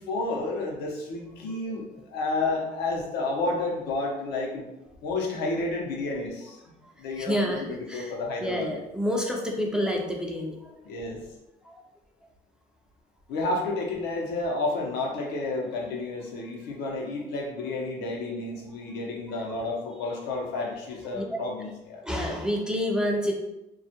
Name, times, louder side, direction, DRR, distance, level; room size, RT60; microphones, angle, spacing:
voice 1, 0.0-4.7 5.0-6.7 7.0-8.7 10.8-11.2 13.3-22.0, left 2 dB, 80° left, -1 dB, 0.6 m, -31 dB
voice 2, 6.8-8.1 8.4-10.7 11.7-11.8 19.3-19.5 21.1-21.2 22.0-23.3, equal, 5° right, -1 dB, 0.3 m, -29 dB
2.3 x 2.0 x 2.7 m, 0.91 s
cardioid pair, 110°, 17 cm